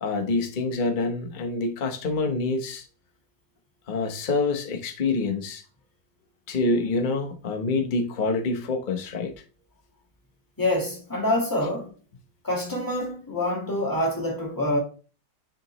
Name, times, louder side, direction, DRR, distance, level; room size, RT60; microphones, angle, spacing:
voice 1, 0.0-2.8 3.9-5.6 6.5-9.3, left 3 dB, 35° left, 0.9 m, -26 dB
voice 2, 10.6-11.9 12.4-14.8, left 1 dB, 10° left, 1.7 m, -26 dB
6.6 x 5.1 x 3.0 m
omnidirectional pair, 1.8 m